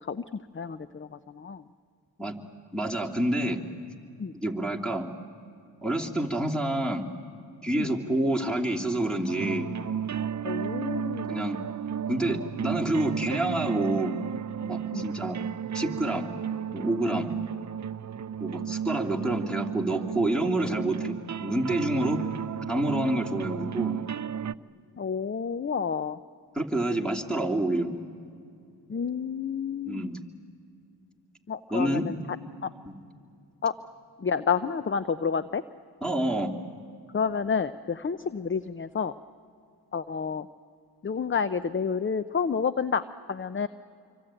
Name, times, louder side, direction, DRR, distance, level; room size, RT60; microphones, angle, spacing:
voice 1, 0.5-1.1 1.3-1.6 4.2-4.3 7.7-7.9 10.4-11.3 14.9-15.0 25.0-26.2 28.9-30.1 31.5-32.1 32.6-32.7 33.6-33.7 34.2-35.6 37.1-39.1 39.9-40.5 41.0-43.0 43.3-43.7, left 6 dB, 30° left, 13 dB, 0.7 m, -29 dB
voice 2, 2.7-3.6 4.3-5.1 5.8-7.1 7.6-9.7 11.3-11.6 12.1-14.1 14.7-15.4 15.7-16.3 16.7-17.3 18.4-22.2 22.7-24.0 26.5-27.9 29.9-30.2 31.7-32.1 32.8-32.9 36.0-36.5, right 1 dB, ahead, 2 dB, 3.0 m, -28 dB
sound 1, 9.3-24.5, right 8 dB, 45° right, 0.6 m, -33 dB
26.5 x 24.5 x 9.0 m, 2.4 s
cardioid pair, 55°, 42 cm